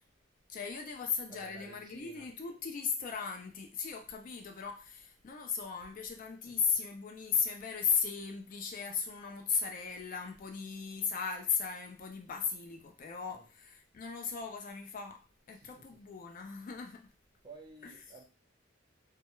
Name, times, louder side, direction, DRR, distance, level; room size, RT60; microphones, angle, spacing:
voice 1, 0.5-17.1 17.8-17.9, left 6 dB, 45° left, 4 dB, 0.3 m, -36 dB
voice 2, 1.3-2.3 6.5-6.9 13.3-13.5 15.5-16.0 17.4-18.2, right 4 dB, 25° right, -1 dB, 0.6 m, -53 dB
2.2 x 2.2 x 2.9 m, 0.34 s
head